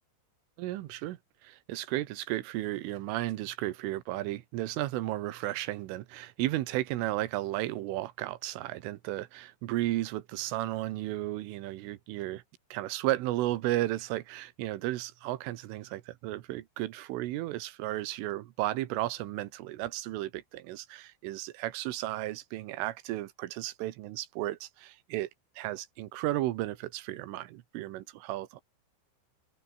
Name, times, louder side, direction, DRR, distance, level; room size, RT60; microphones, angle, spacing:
voice 1, 0.6-12.4 12.7-25.3 25.6-28.6, right 16 dB, 85° right, 3.8 m, -34 dB
open air
omnidirectional pair, 5.6 m